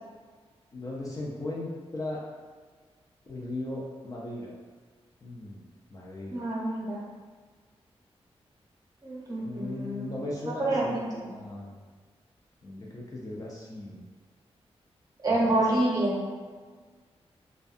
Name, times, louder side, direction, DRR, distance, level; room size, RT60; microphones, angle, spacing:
voice 1, 0.7-2.2 3.3-4.6 5.2-6.4 9.4-11.0 11.3-11.8 12.6-14.0 15.3-15.8, left 2 dB, 35° left, -4 dB, 0.4 m, -38 dB
voice 2, 6.3-7.0 9.0-10.1 10.4-11.3 15.2-16.2, right 1 dB, 35° right, -6 dB, 0.8 m, -28 dB
2.5 x 2.2 x 2.4 m, 1.5 s
wide cardioid pair, 105°, 11 cm